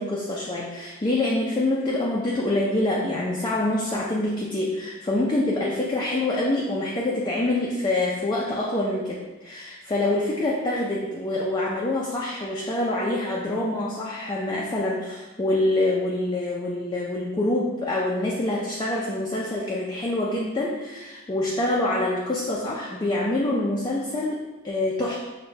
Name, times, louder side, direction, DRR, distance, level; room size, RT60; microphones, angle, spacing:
voice 1, 0.0-25.2, left 1 dB, 20° left, -4 dB, 0.4 m, -26 dB
6.0 x 2.2 x 2.7 m, 1.2 s
head